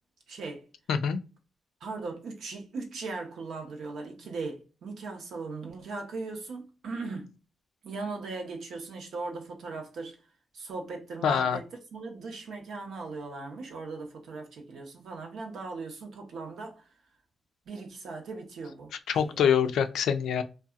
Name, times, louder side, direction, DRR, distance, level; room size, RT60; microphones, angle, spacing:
voice 1, 0.3-0.6 1.8-7.3 7.8-10.2 10.5-11.7 11.9-16.8 17.7-19.4, right 3 dB, 80° right, 0.8 m, -38 dB
voice 2, 0.9-1.2 11.2-11.6 19.1-20.4, left 7 dB, 85° left, 0.3 m, -25 dB
2.7 x 2.2 x 2.3 m
cardioid pair, 60°, 0 cm